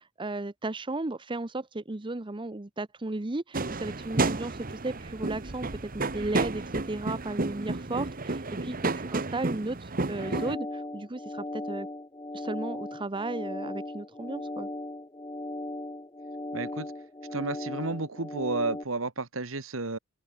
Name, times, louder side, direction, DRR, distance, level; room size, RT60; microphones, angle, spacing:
voice 1, 0.0-11.9 12.3-14.7, right 2 dB, 25° right, 0.8 m, -35 dB
sound 1, 3.5-10.6, right 3 dB, 45° right, 1.3 m, -31 dB
sound 2, 10.0-18.9, left 1 dB, 20° left, 1.6 m, -38 dB
voice 2, 16.5-16.9 17.3-20.0, right 3 dB, 85° right, 1.9 m, -32 dB
head